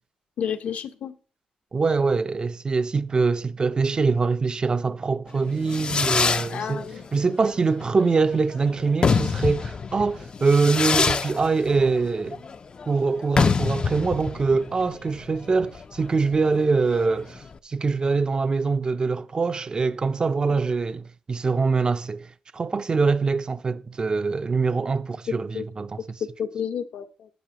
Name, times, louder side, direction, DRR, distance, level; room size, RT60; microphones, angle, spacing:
voice 1, 0.4-1.2 6.5-7.0 20.5-20.6 25.3-25.7 26.4-27.3, left 8 dB, 65° left, 0.9 m, -31 dB
voice 2, 1.7-6.9 7.1-12.4 12.9-26.0, right 4 dB, 35° right, 0.5 m, -24 dB
Fireworks, 5.3-17.6, left 5 dB, 40° left, 0.5 m, -27 dB
12.0 x 9.6 x 2.9 m
cardioid pair, 95°, 3 cm